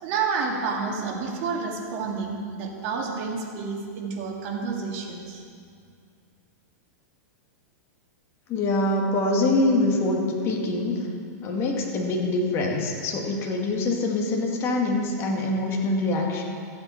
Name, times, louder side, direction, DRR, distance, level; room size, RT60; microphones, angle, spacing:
voice 1, 0.0-5.4, right 5 dB, 45° right, 0 dB, 1.9 m, -29 dB
voice 2, 8.5-11.1 11.4-16.4, left 2 dB, 30° left, 0 dB, 1.8 m, -24 dB
14.5 x 8.3 x 4.5 m, 2.3 s
supercardioid pair, 145°, 9 cm